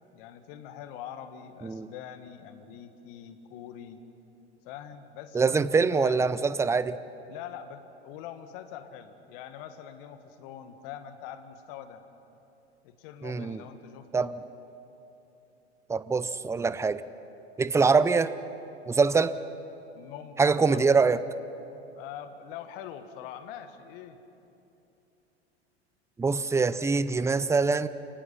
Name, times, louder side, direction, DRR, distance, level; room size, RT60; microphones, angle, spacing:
voice 1, 0.1-4.0 4.6-6.2 7.3-12.0 12.8-14.4 19.9-20.9 22.0-24.2, left 9 dB, 55° left, 9 dB, 1.8 m, -43 dB
voice 2, 5.3-7.0 13.2-13.6 14.1-14.4 15.9-17.0 17.6-18.3 18.9-19.3 20.4-21.2 26.2-27.9, right 4 dB, 10° right, 15 dB, 0.6 m, -24 dB
28.5 x 18.5 x 5.6 m, 2.9 s
hypercardioid pair, 95°, 34 cm